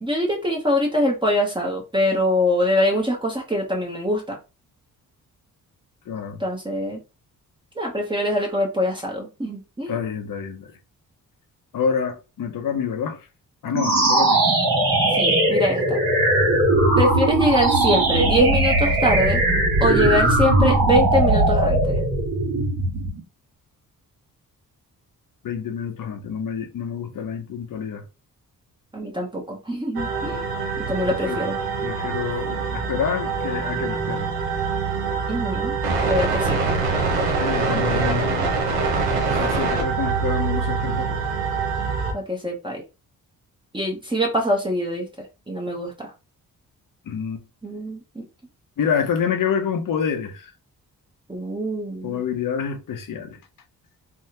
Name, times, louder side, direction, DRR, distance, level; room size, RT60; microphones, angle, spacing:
voice 1, 0.0-4.4 6.4-7.0 7.8-10.0 15.1-16.0 17.0-19.4 19.8-22.0 28.9-30.5 30.8-31.6 35.3-35.7 36.1-36.6 42.1-42.8 43.7-45.1 45.5-46.1 47.6-48.2 51.3-52.2, equal, 15° right, 0.9 m, -23 dB
voice 2, 6.1-6.4 9.9-10.7 11.7-13.2 13.6-14.4 25.4-28.0 31.2-31.4 31.8-34.3 37.4-38.5 39.3-41.2 47.1-47.4 48.8-50.5 52.0-53.4, left 7 dB, 60° left, 0.8 m, -27 dB
sound 1, 13.7-23.2, right 2 dB, 70° right, 1.5 m, -19 dB
sound 2, 29.9-42.1, right 4 dB, 90° right, 0.9 m, -24 dB
3.4 x 2.2 x 2.9 m
cardioid pair, 75°, 36 cm